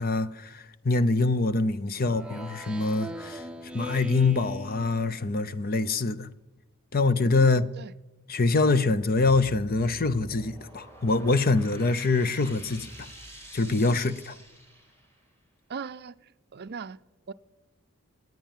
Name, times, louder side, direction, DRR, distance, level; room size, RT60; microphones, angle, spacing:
voice 1, 0.0-3.4 3.7-6.3 6.9-7.6 8.3-13.1 13.5-14.4, left 3 dB, 45° left, 0.7 m, -25 dB
Speech synthesizer, 2.0-5.5, equal, 5° right, 0.7 m, -40 dB
voice 2, 7.4-7.9 15.7-17.0 17.3-17.4, right 5 dB, 50° right, 0.5 m, -39 dB
sound 1, 9.0-15.3, equal, 10° left, 3.6 m, -47 dB
19.5 x 9.3 x 7.4 m
head